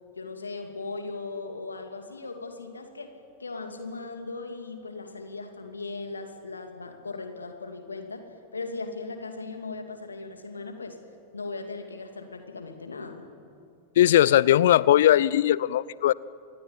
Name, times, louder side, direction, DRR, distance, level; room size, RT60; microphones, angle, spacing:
voice 1, 0.2-3.1 3.4-11.0 11.3-13.3, left 3 dB, 75° left, 5 dB, 2.6 m, -38 dB
voice 2, 14.0-16.1, left 12 dB, 60° left, 22 dB, 0.6 m, -19 dB
27.0 x 20.5 x 9.0 m, 2.5 s
figure-of-eight pair, 90°, 0 cm